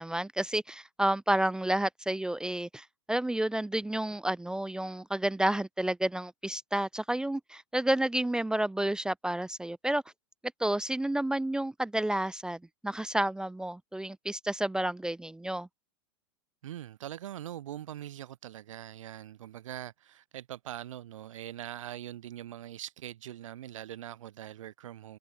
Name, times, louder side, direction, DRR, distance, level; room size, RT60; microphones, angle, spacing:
voice 1, 0.0-10.0 10.6-15.7, right 1 dB, 5° right, 0.5 m, -30 dB
voice 2, 16.6-25.2, right 12 dB, 85° right, 0.6 m, -42 dB
hypercardioid pair, 115°, 16 cm